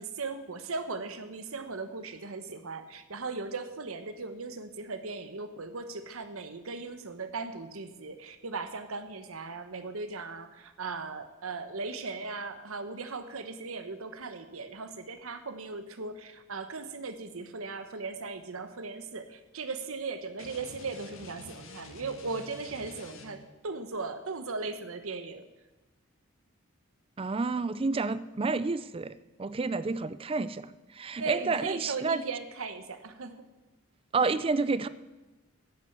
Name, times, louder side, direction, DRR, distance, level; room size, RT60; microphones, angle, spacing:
voice 1, 0.0-25.4 31.2-33.4, right 4 dB, 80° right, 10 dB, 1.0 m, -38 dB
sound 1, 20.4-23.6, left 2 dB, 65° left, 1.5 m, -48 dB
voice 2, 27.2-29.1 29.4-30.7 30.9-32.2 34.1-34.9, right 4 dB, 25° right, 16 dB, 0.4 m, -29 dB
10.5 x 8.6 x 6.7 m, 1.1 s
head